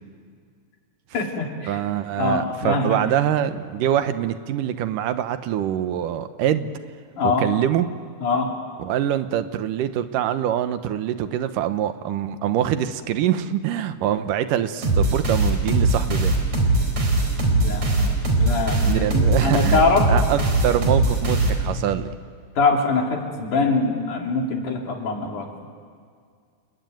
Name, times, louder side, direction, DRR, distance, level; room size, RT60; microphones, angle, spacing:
voice 1, 1.1-1.8 2.2-3.0 7.2-7.5 8.2-8.5 17.5-20.0 22.6-25.7, left 3 dB, 70° left, 1 dB, 4.6 m, -23 dB
voice 2, 1.7-6.7 7.2-7.9 8.8-16.4 18.8-19.8 20.1-22.1, right 10 dB, 85° right, 10 dB, 2.6 m, -24 dB
sound 1, 14.8-22.0, right 2 dB, 55° right, 5.3 m, -21 dB
30.0 x 21.5 x 9.3 m, 2.1 s
omnidirectional pair, 3.7 m